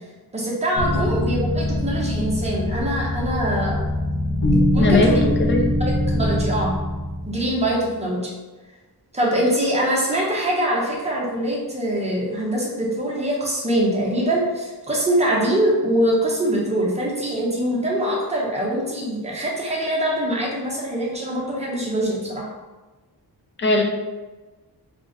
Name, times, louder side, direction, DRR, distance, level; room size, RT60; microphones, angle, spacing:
voice 1, 0.3-3.8 4.5-5.2 5.8-6.7 7.2-8.2 9.1-22.5, right 1 dB, 15° right, -4 dB, 0.6 m, -23 dB
sound 1, 0.7-7.8, left 1 dB, 65° left, 0.9 m, -23 dB
voice 2, 4.8-5.6 23.6-23.8, left 3 dB, 30° left, 1 dB, 0.4 m, -19 dB
2.4 x 2.1 x 3.6 m, 1.2 s
wide cardioid pair, 155°, 40 cm